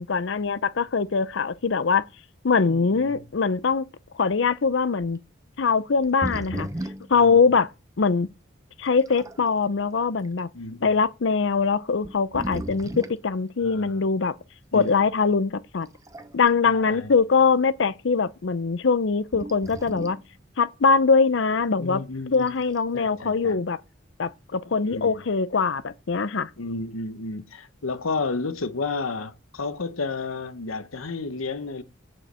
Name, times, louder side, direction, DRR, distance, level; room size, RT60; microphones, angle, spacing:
voice 1, 0.0-2.0 2.4-3.8 4.2-5.2 5.6-6.7 7.1-7.7 8.0-8.3 8.8-10.5 10.8-14.3 14.7-15.9 16.3-20.2 20.6-22.0 22.3-23.8 24.2-26.5, left 5 dB, 65° left, 0.6 m, -22 dB
voice 2, 2.6-3.2 7.1-7.4 10.5-11.0 13.6-14.0 14.7-14.9 16.6-17.1 21.8-22.5 22.9-23.6 24.8-25.2 26.6-31.8, left 3 dB, 90° left, 1.0 m, -32 dB
sound 1, 5.1-5.2 6.0-7.2 8.0-8.1 8.8-9.4 10.2-10.4 11.3-11.4 12.0-13.2 14.9-15.0 15.8-16.6 16.9-17.0 19.3-20.3 22.3-22.9, right 1 dB, 15° right, 0.6 m, -35 dB
6.5 x 6.4 x 7.5 m
head